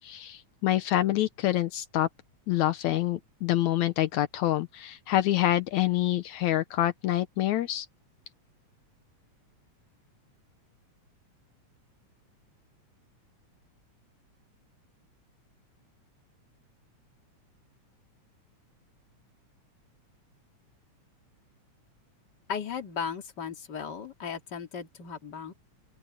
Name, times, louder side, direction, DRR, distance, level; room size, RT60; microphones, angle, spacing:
voice 1, 0.0-2.1 2.5-7.9, left 13 dB, 80° left, 2.2 m, -26 dB
voice 2, 22.5-25.5, left 6 dB, 35° left, 2.7 m, -36 dB
open air
omnidirectional pair, 3.4 m